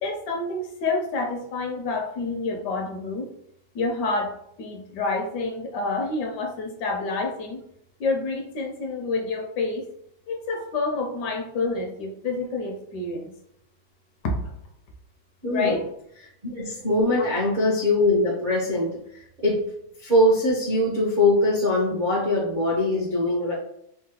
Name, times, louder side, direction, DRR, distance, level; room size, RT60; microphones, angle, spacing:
voice 1, 0.0-3.3 3.7-4.3 4.6-7.6 8.0-9.9 10.3-13.3 14.2-14.5 15.5-15.8 17.2-17.3, left 3 dB, 70° left, 2 dB, 1.1 m, -28 dB
voice 2, 15.4-15.8 16.4-19.6 20.0-23.5, left 1 dB, 55° right, -5 dB, 0.5 m, -22 dB
3.7 x 2.0 x 2.8 m, 0.74 s
omnidirectional pair, 2.0 m